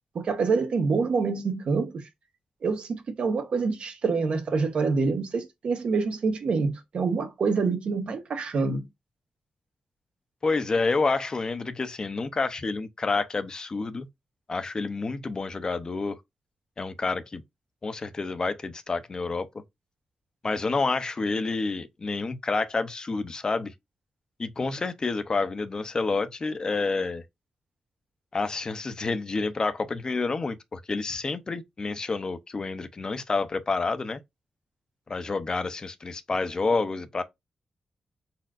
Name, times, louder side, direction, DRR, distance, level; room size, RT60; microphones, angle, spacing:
voice 1, 0.1-2.0 2.6-8.8, right 4 dB, 70° right, 1.2 m, -26 dB
voice 2, 10.4-14.1 14.5-16.2 16.8-17.4 17.8-19.5 20.4-23.7 24.4-27.2 28.3-34.2 35.1-37.2, left 3 dB, 35° left, 0.6 m, -29 dB
4.8 x 4.2 x 2.5 m
cardioid pair, 100°, 2 cm